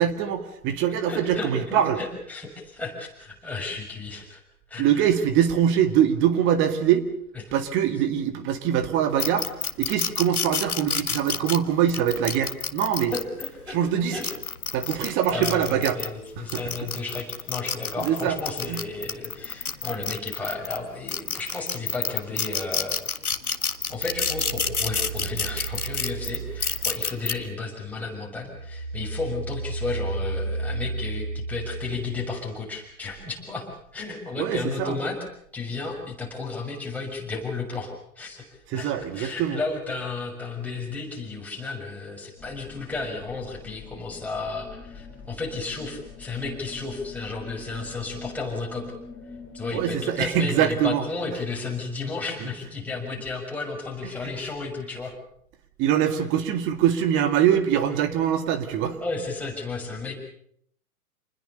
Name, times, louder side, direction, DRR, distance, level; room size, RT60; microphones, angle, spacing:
voice 1, 0.0-2.0 4.8-7.1 7.5-9.5 9.8-13.2 13.7-14.2 14.7-16.0 16.4-16.6 18.0-18.4 18.7-18.8 34.4-35.0 38.7-39.6 49.7-51.0 55.8-59.0, right 9 dB, 25° right, 9 dB, 2.2 m, -23 dB
voice 2, 1.1-4.4 4.7-5.1 7.5-7.6 13.1-13.8 14.1-14.3 14.9-23.0 23.9-35.2 35.5-37.9 38.2-48.8 49.5-55.1 58.8-60.2, left 3 dB, 5° left, -2 dB, 6.5 m, -33 dB
sound 1, 9.2-13.5 14.0-16.1 16.5-20.8 21.1-27.3, left 5 dB, 75° left, 1.8 m, -28 dB
sound 2, 23.8-27.7 28.1-32.6, right 3 dB, 75° right, 1.2 m, -34 dB
sound 3, 42.4-50.1, left 4 dB, 20° left, 3.5 m, -44 dB
28.0 x 21.0 x 6.8 m, 0.67 s
figure-of-eight pair, 115°, 44 cm